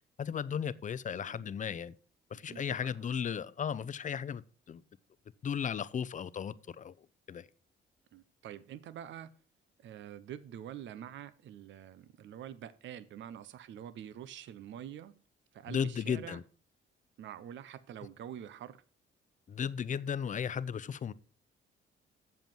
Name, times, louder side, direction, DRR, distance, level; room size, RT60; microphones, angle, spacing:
voice 1, 0.2-1.9 2.3-4.8 5.4-7.5 15.7-16.4 19.5-21.1, left 7 dB, 40° left, 0.6 m, -35 dB
voice 2, 2.5-2.9 8.1-9.3 9.8-15.1 15.5-16.4 17.2-18.8, right 10 dB, 70° right, 0.7 m, -46 dB
7.7 x 7.1 x 5.9 m
cardioid pair, 90°, 20 cm